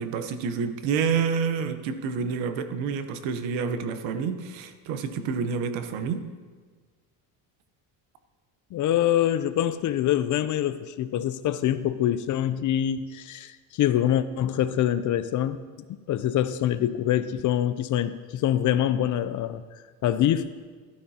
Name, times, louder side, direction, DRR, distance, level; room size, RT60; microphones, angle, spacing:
voice 1, 0.0-6.2, right 6 dB, 75° right, 9 dB, 1.1 m, -28 dB
voice 2, 8.7-15.6 16.1-19.6 20.0-20.5, left 11 dB, 40° left, 13 dB, 0.5 m, -25 dB
12.5 x 12.0 x 2.8 m, 1.5 s
cardioid pair, 120°, 46 cm